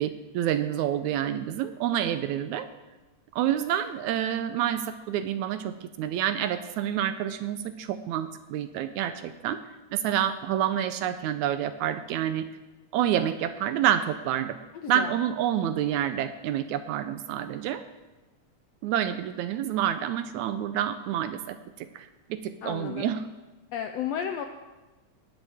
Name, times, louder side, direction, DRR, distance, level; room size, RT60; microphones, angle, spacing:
voice 1, 0.0-2.7 3.3-9.6 9.9-12.5 12.9-14.6 14.9-17.8 18.8-23.2, right 10 dB, 80° right, 11 dB, 1.8 m, -28 dB
voice 2, 14.7-15.2 22.6-23.1 23.7-24.5, left 9 dB, 80° left, 6 dB, 1.5 m, -33 dB
18.5 x 11.0 x 3.5 m, 1.2 s
omnidirectional pair, 3.6 m